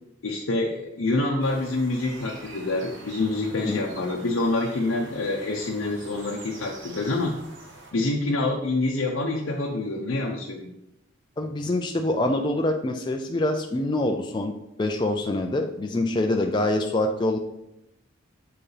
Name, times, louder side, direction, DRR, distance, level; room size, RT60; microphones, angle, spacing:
voice 1, 0.2-7.3 7.9-10.7, left 2 dB, 80° left, -1 dB, 0.7 m, -26 dB
sound 1, 1.4-7.9, right 3 dB, 65° right, 1.2 m, -45 dB
voice 2, 11.4-17.4, left 1 dB, 20° left, 3 dB, 0.3 m, -25 dB
7.3 x 4.7 x 3.3 m, 0.83 s
head